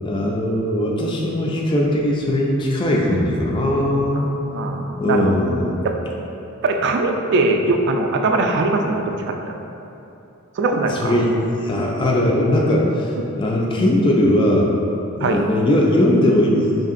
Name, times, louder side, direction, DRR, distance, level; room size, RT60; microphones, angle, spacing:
voice 1, 0.0-4.3 5.0-5.8 10.9-11.3 11.6-13.1 13.3-14.7 15.2-16.9, left 1 dB, 20° left, -2 dB, 0.3 m, -19 dB
voice 2, 4.5-5.3 5.8-5.9 6.6-9.3 10.6-11.2 15.2-15.4, right 2 dB, 55° right, 3 dB, 0.3 m, -20 dB
5.0 x 2.7 x 2.4 m, 2.8 s
head